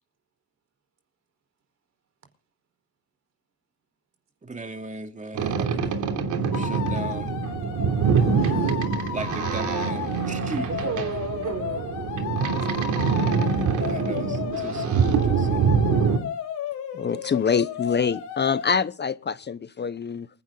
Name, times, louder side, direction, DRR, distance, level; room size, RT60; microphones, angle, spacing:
voice 1, 4.4-6.0 6.4-7.3 9.1-10.7 13.8-15.8 17.1-17.3, right 3 dB, 25° right, 2.6 m, -37 dB
Boat Water vehicle, 5.3-16.2, right 6 dB, 80° right, 3.0 m, -24 dB
sound 1, 6.5-18.7, left 9 dB, 80° left, 3.4 m, -34 dB
voice 2, 8.2-9.0 10.7-12.0, right 7 dB, 60° right, 4.7 m, -34 dB
voice 3, 16.9-20.3, left 6 dB, 35° left, 0.9 m, -25 dB
27.5 x 11.0 x 3.9 m
cardioid pair, 90°, 30 cm